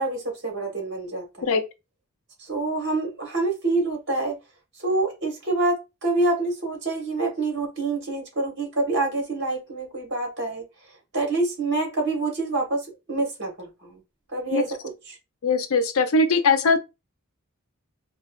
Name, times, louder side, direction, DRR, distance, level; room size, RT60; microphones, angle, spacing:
voice 1, 0.0-1.5 2.5-4.3 4.8-5.8 6.0-10.6 11.1-12.8 13.1-13.5 14.3-14.7, right 2 dB, 55° right, 1.3 m, -26 dB
voice 2, 15.4-16.8, left 3 dB, 85° left, 0.5 m, -20 dB
4.2 x 2.2 x 2.3 m
head